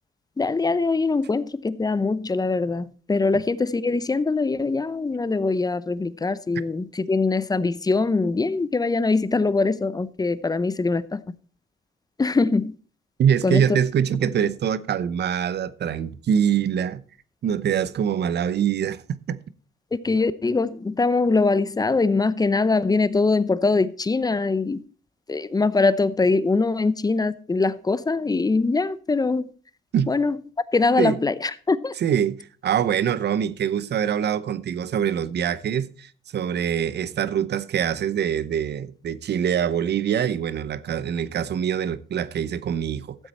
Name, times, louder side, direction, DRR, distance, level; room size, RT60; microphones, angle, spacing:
voice 1, 0.4-11.4 12.2-12.7 13.4-13.6 19.9-24.8 25.3-29.5 30.1-30.4 30.7-31.9, left 3 dB, 20° left, 0.7 m, -22 dB
voice 2, 13.2-17.0 17.4-19.0 19.3-19.4 29.9-30.1 31.0-31.2 32.0-43.2, right 8 dB, 60° right, 0.8 m, -24 dB
13.5 x 7.7 x 4.2 m
cardioid pair, 90°, 20 cm